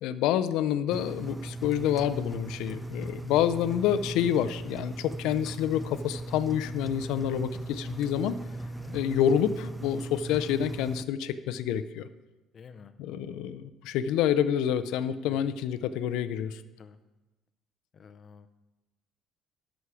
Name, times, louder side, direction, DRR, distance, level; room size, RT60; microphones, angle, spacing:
voice 1, 0.0-8.4 8.9-12.1 13.0-16.6, left 10 dB, 80° left, 12 dB, 0.5 m, -28 dB
Engine, 0.9-11.0, right 2 dB, 5° right, 0.3 m, -38 dB
voice 2, 7.1-7.5 8.7-8.9 12.5-12.9 15.2-15.5 16.8-17.0 17.9-18.5, left 6 dB, 40° left, 11 dB, 0.6 m, -49 dB
11.0 x 6.3 x 4.9 m, 1.1 s
cardioid pair, 115°, 0 cm